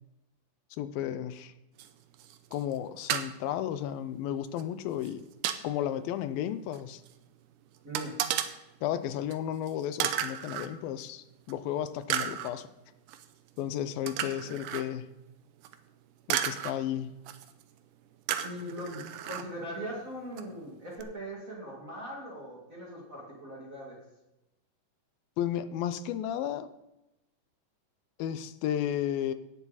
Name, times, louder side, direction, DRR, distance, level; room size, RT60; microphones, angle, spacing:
voice 1, 0.8-1.5 2.5-5.2 5.6-7.0 8.8-12.7 13.6-15.1 16.3-17.2 25.4-26.7 28.2-29.3, left 10 dB, 85° left, 12 dB, 2.5 m, -33 dB
sound 1, 1.8-1.9 2.1-2.8 3.1-3.3 4.6-4.7 5.0-5.6 6.7-6.8 7.1-7.2 7.9-8.5 9.3-9.4 9.7-9.8 10.0-10.7 11.5-11.6 12.1-12.5 13.1-13.3 14.1-14.8 15.6-15.8 16.3-16.7 17.3-17.6 18.3-19.4 20.4-20.5 21.0-21.1, right 10 dB, 75° right, 2.0 m, -33 dB
voice 2, 7.8-8.2 14.3-14.6 18.4-24.0, equal, 25° right, -3 dB, 2.2 m, -40 dB
17.5 x 7.1 x 4.1 m, 0.93 s
omnidirectional pair, 4.1 m